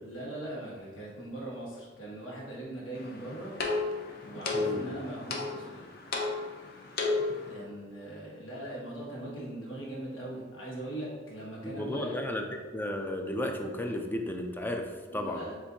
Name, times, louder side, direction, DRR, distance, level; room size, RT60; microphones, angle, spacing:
voice 1, 0.0-3.5 4.2-5.8 7.5-12.2 15.1-15.6, right 1 dB, 80° left, -4 dB, 1.3 m, -40 dB
sound 1, 2.9-7.5, left 3 dB, 50° left, 0.6 m, -33 dB
voice 2, 4.5-4.9 11.6-12.4 12.7-14.9 15.1-15.4, left 1 dB, 10° left, 3 dB, 0.3 m, -33 dB
7.3 x 2.5 x 2.7 m, 1.5 s
head